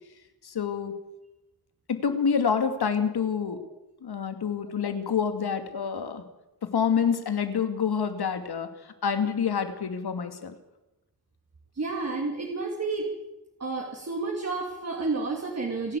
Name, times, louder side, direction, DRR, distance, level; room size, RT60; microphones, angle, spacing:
voice 1, 0.4-0.9 1.9-3.6 4.0-6.2 6.6-8.7 9.0-10.5, left 6 dB, 80° left, 8 dB, 2.4 m, -27 dB
voice 2, 11.7-13.1 13.6-16.0, right 3 dB, 40° right, 0 dB, 2.9 m, -31 dB
29.0 x 11.5 x 8.4 m, 0.97 s
wide cardioid pair, 175°, 38 cm